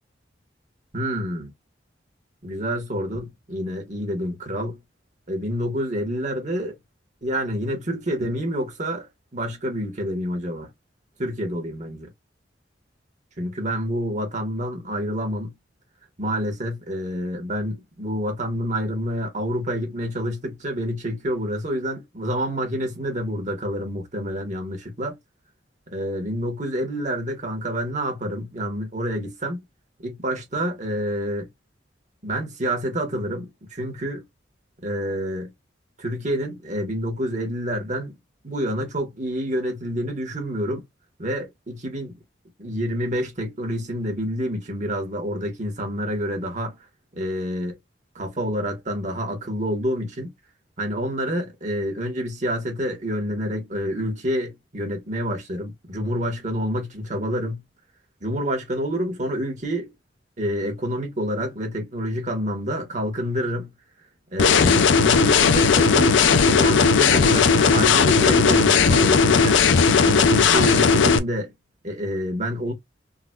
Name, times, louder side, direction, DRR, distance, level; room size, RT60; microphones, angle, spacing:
voice 1, 0.9-1.5 2.4-4.8 5.3-6.8 7.2-9.1 9.3-10.7 11.2-12.1 13.4-15.5 16.2-25.2 25.9-29.6 30.0-31.5 32.2-34.2 34.8-35.5 36.0-38.2 38.4-40.8 41.2-42.1 42.6-46.8 47.1-47.8 48.1-50.3 50.8-57.6 58.2-59.9 60.4-63.7 64.3-69.7 70.0-71.5 71.8-72.7, equal, 40° right, 1.4 m, -28 dB
sound 1, 64.4-71.2, left 5 dB, 85° left, 0.5 m, -17 dB
3.8 x 2.4 x 2.3 m
head